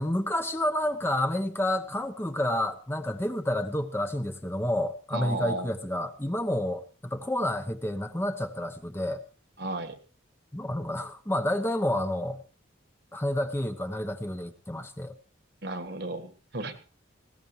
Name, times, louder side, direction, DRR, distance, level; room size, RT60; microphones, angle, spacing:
voice 1, 0.0-9.2 10.5-12.4 13.1-15.1, left 1 dB, 10° left, 7 dB, 0.9 m, -29 dB
voice 2, 5.1-5.7 9.6-10.0 15.6-16.8, right 1 dB, 55° right, 9 dB, 1.7 m, -34 dB
20.0 x 17.5 x 3.2 m, 0.34 s
head